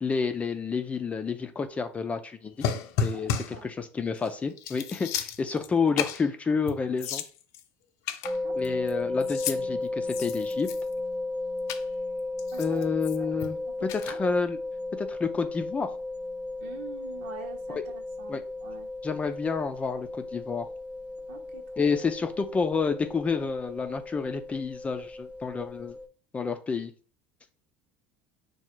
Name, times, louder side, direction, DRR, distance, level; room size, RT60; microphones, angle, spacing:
voice 1, 0.0-2.5 3.0-7.2 8.5-10.7 12.6-13.6 14.1-14.6 15.0-15.9 17.7-17.8 18.3-18.4 19.0-20.7 21.8-26.0 26.3-26.9, left 5 dB, 25° left, 7 dB, 0.5 m, -29 dB
sound 1, 2.6-3.6 4.2-4.3 4.6-5.7 6.0-6.3 6.7-6.8 7.0-7.6 8.1-8.9 9.2-9.6 10.0-11.0 11.7-11.8 12.4-13.5 13.9-14.1, left 7 dB, 70° left, 0.6 m, -32 dB
voice 2, 3.1-3.7 8.4-8.8 12.5-12.8 13.2-14.2 16.6-18.9 21.3-21.6 21.9-22.0, right 6 dB, 85° right, 4 dB, 1.1 m, -46 dB
sound 2, 8.2-26.1, left 2 dB, 20° right, 0.7 m, -35 dB
4.7 x 2.3 x 4.5 m, 0.38 s
supercardioid pair, 105°, 6 cm